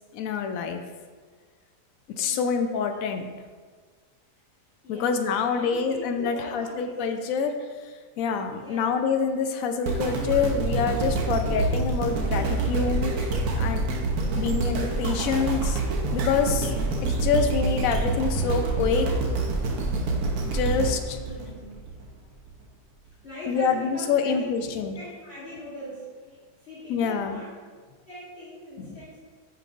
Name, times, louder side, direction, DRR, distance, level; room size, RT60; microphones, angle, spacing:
voice 1, 0.1-0.8 2.2-3.3 4.9-7.5 8.2-13.1 13.6-13.8 14.3-15.8 16.1-16.7 17.0-19.1 20.4-21.2 23.5-25.0 26.9-27.4 28.8-29.0, left 6 dB, 70° left, 7 dB, 0.9 m, -26 dB
voice 2, 2.1-3.1 4.8-5.2 5.5-7.3 8.5-9.0 17.0-17.5 21.1-21.8 23.2-27.6 28.1-29.2, equal, 40° left, -9 dB, 1.6 m, -41 dB
sound 1, 9.9-22.1 22.6-22.7, right 3 dB, 70° right, 1.2 m, -26 dB
7.5 x 5.3 x 2.5 m, 1.5 s
omnidirectional pair, 1.7 m